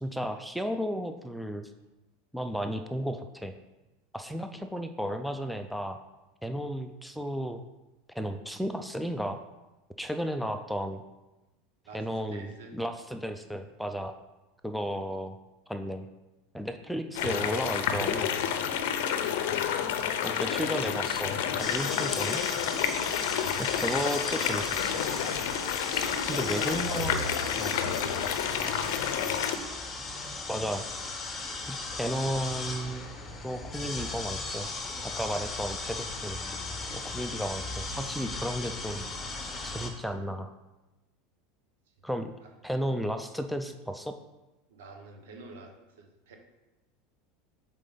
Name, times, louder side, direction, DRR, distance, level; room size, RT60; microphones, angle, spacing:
voice 1, 0.0-1.7 2.3-3.5 4.1-6.0 6.4-7.6 8.2-9.4 10.0-11.0 11.9-14.1 14.6-15.4 15.7-16.1 16.5-18.3 20.2-22.4 23.6-25.0 25.9-27.3 27.6-27.8 30.5-30.8 31.7-33.0 33.4-34.7 35.1-36.4 36.9-39.0 39.6-40.5 42.0-42.3 42.6-44.1, equal, ahead, 6 dB, 0.4 m, -33 dB
voice 2, 11.8-12.8 26.1-27.4 28.0-29.4 31.5-31.6 42.4-42.5 44.7-46.4, right 4 dB, 80° right, 3 dB, 1.2 m, -47 dB
sound 1, 17.1-29.5, left 8 dB, 75° left, 0.6 m, -30 dB
sound 2, 21.6-39.9, left 3 dB, 20° left, 1.0 m, -37 dB
7.4 x 4.1 x 3.9 m, 1.0 s
supercardioid pair, 120°, 0 cm